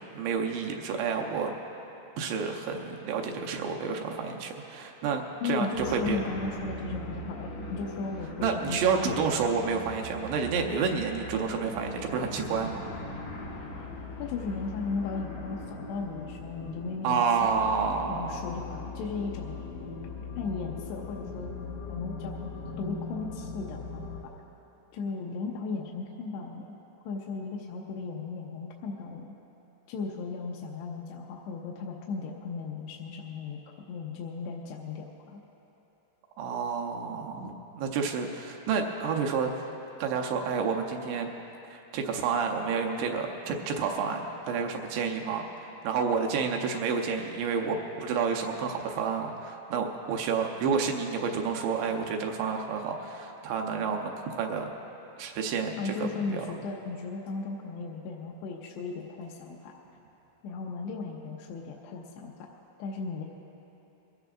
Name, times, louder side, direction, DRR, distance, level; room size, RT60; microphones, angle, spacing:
voice 1, 0.0-1.5 2.2-6.2 8.4-12.9 17.0-18.4 36.4-39.7 40.0-41.3 41.7-54.7 55.2-56.5, right 5 dB, 85° right, 2 dB, 3.1 m, -30 dB
voice 2, 5.4-8.8 14.2-17.5 18.1-19.6 20.4-21.5 21.9-22.5 22.8-24.1 24.9-26.8 27.1-29.3 29.9-33.6 33.9-35.4 55.8-59.7 60.4-62.5 62.8-63.2, left 4 dB, 80° left, -1 dB, 2.9 m, -36 dB
nightmare drone, 5.7-24.2, left 2 dB, 50° left, 2.1 m, -40 dB
22.5 x 16.0 x 2.5 m, 3.0 s
omnidirectional pair, 4.9 m